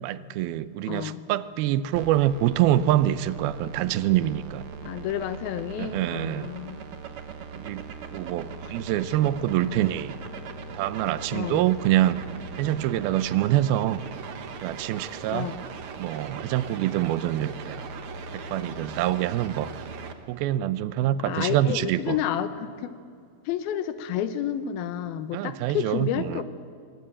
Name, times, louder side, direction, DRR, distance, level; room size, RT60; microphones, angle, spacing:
voice 1, 0.0-4.6 5.8-6.5 7.6-7.8 8.1-10.2 10.7-12.2 12.6-14.0 14.6-15.5 16.0-17.8 18.3-19.7 20.3-22.2 25.3-26.4, right 13 dB, 90° right, 15 dB, 2.6 m, -25 dB
voice 2, 0.9-1.2 4.8-6.8 9.2-9.3 9.6-9.9 11.3-11.7 15.3-15.6 21.2-22.9 23.5-26.4, left 10 dB, 85° left, 12 dB, 2.9 m, -30 dB
sound 1, 1.9-20.1, right 4 dB, 70° right, 1.3 m, -39 dB
21.5 x 19.0 x 8.8 m, 2.3 s
omnidirectional pair, 4.2 m